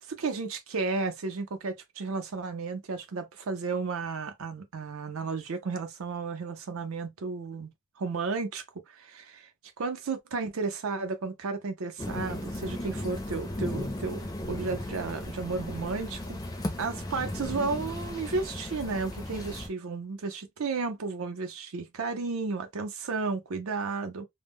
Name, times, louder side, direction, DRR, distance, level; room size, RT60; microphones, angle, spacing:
voice 1, 0.1-7.7 8.0-9.5 9.8-16.4 16.8-24.3, right 4 dB, 70° right, 0.6 m, -33 dB
sound 1, 12.0-19.7, left 1 dB, 15° left, 0.4 m, -36 dB
2.2 x 2.0 x 3.4 m
head